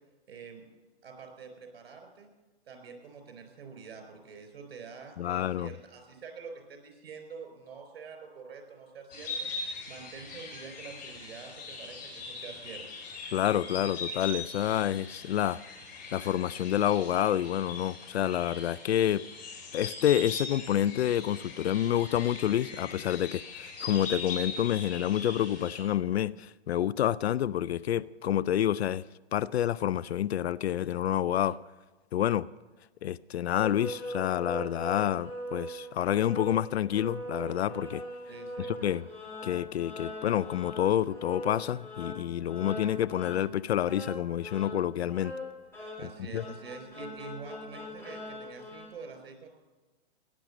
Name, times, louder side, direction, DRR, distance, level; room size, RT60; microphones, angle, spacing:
voice 1, 0.3-0.7 1.0-2.3 2.7-9.5 9.9-12.9 38.3-38.7 46.0-49.5, right 5 dB, 60° right, 4.3 m, -46 dB
voice 2, 5.2-5.7 13.3-15.6 16.1-19.2 19.7-29.0 29.3-31.6 32.1-32.5 33.0-38.0 38.6-39.0 39.4-45.3 46.3-46.4, left 11 dB, 75° left, 0.5 m, -28 dB
sound 1, 9.1-25.8, left 3 dB, 25° left, 4.2 m, -41 dB
sound 2, 33.5-48.9, equal, 5° left, 4.3 m, -41 dB
17.5 x 10.0 x 6.6 m
hypercardioid pair, 130°, 32 cm